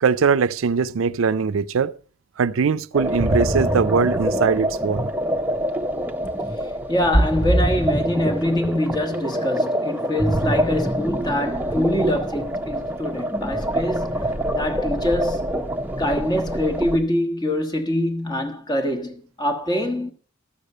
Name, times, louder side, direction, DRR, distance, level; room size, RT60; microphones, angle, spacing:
voice 1, 0.0-1.9 2.4-5.1, right 5 dB, 80° right, 0.5 m, -21 dB
sound 1, 2.9-17.0, right 1 dB, 10° right, 0.7 m, -24 dB
voice 2, 6.9-15.6 16.0-20.1, left 1 dB, 20° left, 1.2 m, -24 dB
13.0 x 6.7 x 6.6 m
head